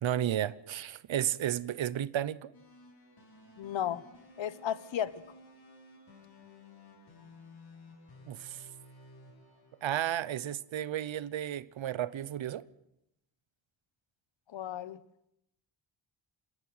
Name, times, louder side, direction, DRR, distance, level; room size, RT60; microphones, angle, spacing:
voice 1, 0.0-2.5 8.3-8.7 9.8-12.6, right 11 dB, 80° right, 0.9 m, -33 dB
sound 1, 2.5-10.7, left 2 dB, 55° left, 7.1 m, -56 dB
voice 2, 3.6-4.0 4.4-5.1 14.5-15.0, left 10 dB, 75° left, 1.1 m, -34 dB
27.5 x 13.5 x 7.9 m
wide cardioid pair, 130°, 45 cm